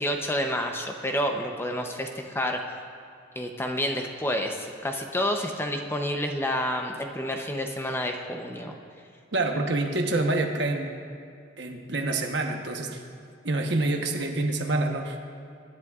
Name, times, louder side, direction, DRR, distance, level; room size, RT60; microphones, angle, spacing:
voice 1, 0.0-2.6 3.4-8.7, equal, 10° left, 3 dB, 0.7 m, -29 dB
voice 2, 9.3-11.0 11.6-13.0 13.4-15.2, right 2 dB, 60° right, 3 dB, 1.1 m, -27 dB
24.0 x 10.5 x 2.4 m, 2.3 s
head